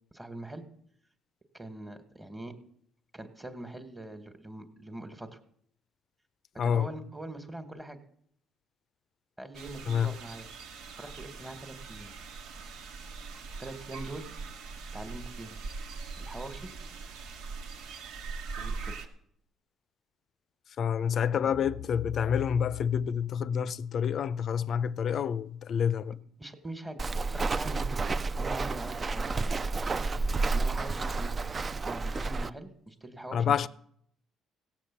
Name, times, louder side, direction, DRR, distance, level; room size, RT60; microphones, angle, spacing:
voice 1, 0.1-0.6 1.5-2.5 3.1-5.4 6.6-8.0 9.4-10.5 11.0-12.1 13.6-14.3 14.9-15.6 16.2-16.7 18.6-19.0 26.4-27.0 27.3-29.6 30.5-33.5, right 1 dB, 15° right, 1.4 m, -43 dB
voice 2, 6.6-7.0 9.9-10.1 20.8-26.2 33.3-33.7, left 8 dB, 55° left, 0.5 m, -28 dB
sound 1, 9.5-19.1, right 4 dB, 90° right, 1.5 m, -41 dB
Walk footsteps, 27.0-32.5, right 3 dB, 30° right, 0.5 m, -30 dB
16.5 x 7.3 x 7.1 m
cardioid pair, 95°, 0 cm